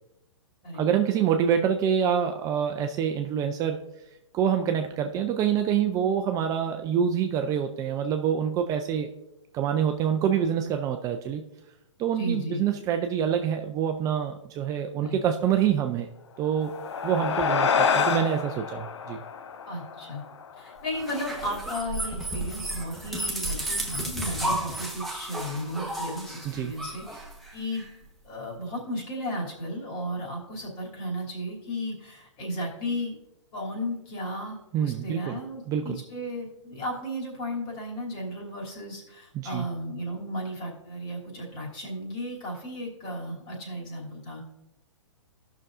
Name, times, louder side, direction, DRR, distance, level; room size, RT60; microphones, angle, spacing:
voice 1, 0.7-3.8 4.3-9.1 9.5-11.4 12.0-16.1 16.4-16.7 17.0-19.2 26.4-26.7 34.7-35.4 35.7-36.0 39.3-39.6, right 8 dB, 20° right, 5 dB, 0.4 m, -26 dB
voice 2, 12.2-12.6 15.0-15.2 19.7-20.2 20.6-27.2 27.5-27.8 28.2-33.1 33.5-44.5, equal, 35° left, -2 dB, 2.9 m, -34 dB
sound 1, 16.5-21.2, left 6 dB, 65° left, 0.7 m, -28 dB
sound 2, 20.9-27.9, right 1 dB, ahead, 1.0 m, -33 dB
15.5 x 6.1 x 2.5 m, 0.91 s
hypercardioid pair, 125°, 16 cm